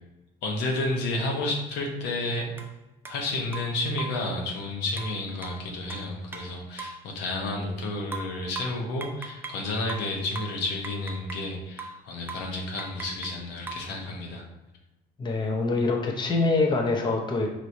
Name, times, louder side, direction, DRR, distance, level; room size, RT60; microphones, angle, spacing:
voice 1, 0.4-2.5 3.1-14.4, left 2 dB, 90° left, 0 dB, 0.9 m, -31 dB
sound 1, 2.6-2.7 3.0-3.2 3.5-4.3 5.0-7.1 8.1-9.6 9.9-11.5 11.8-12.0 12.3-12.5 12.8-13.9, right 3 dB, 15° right, 0.4 m, -40 dB
voice 2, 15.2-17.5, left 3 dB, 25° left, 1 dB, 0.6 m, -25 dB
4.5 x 3.1 x 2.6 m, 1.0 s
cardioid pair, 110°, 17 cm